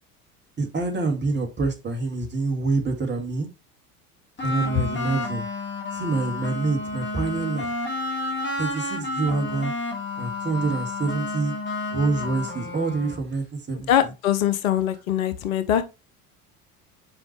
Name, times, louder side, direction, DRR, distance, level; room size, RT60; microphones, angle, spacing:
voice 1, 0.6-3.5 4.4-5.5 5.9-7.7 8.6-9.7 10.2-11.5 11.9-14.1, right 3 dB, 25° right, 2.1 m, -26 dB
sound 1, 4.4-13.2, left 2 dB, 25° left, 2.3 m, -31 dB
voice 2, 13.9-15.8, left 11 dB, 65° left, 0.9 m, -22 dB
6.1 x 5.0 x 3.2 m
figure-of-eight pair, 70°, 44 cm